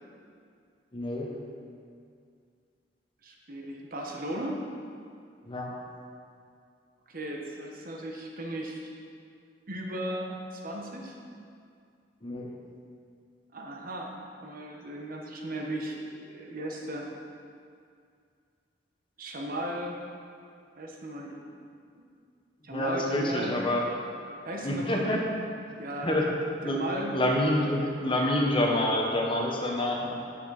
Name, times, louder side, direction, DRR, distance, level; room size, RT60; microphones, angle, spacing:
voice 1, 0.9-1.3 5.4-5.7 12.2-12.5 22.7-23.8 24.6-25.2 26.0-26.3 26.6-26.8 27.1-30.1, left 1 dB, 30° left, 0 dB, 1.0 m, -27 dB
voice 2, 3.2-4.6 7.1-8.9 9.7-11.2 13.5-14.1 14.4-17.1 19.2-20.0 20.8-21.4 21.9-22.0 22.6-23.5 24.4-25.2 25.8-26.2 26.6-27.1, right 1 dB, 50° right, 0 dB, 1.1 m, -36 dB
9.1 x 7.7 x 4.1 m, 2.3 s
head